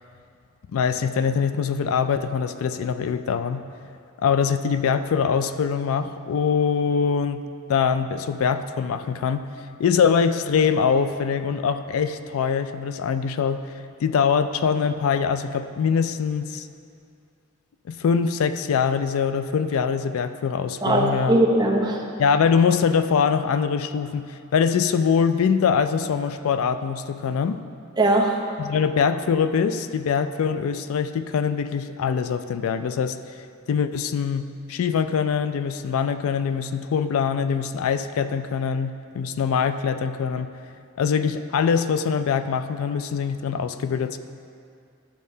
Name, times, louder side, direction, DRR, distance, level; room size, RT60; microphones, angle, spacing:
voice 1, 0.7-3.6 4.2-7.4 7.7-9.5 9.8-16.7 17.9-21.4 22.2-27.6 28.6-33.4 33.7-40.5 41.0-44.2, left 6 dB, 75° left, 10 dB, 0.3 m, -23 dB
voice 2, 20.8-22.1 28.0-28.4, right 1 dB, 20° right, -2 dB, 0.7 m, -20 dB
11.5 x 7.4 x 2.7 m, 2.4 s
head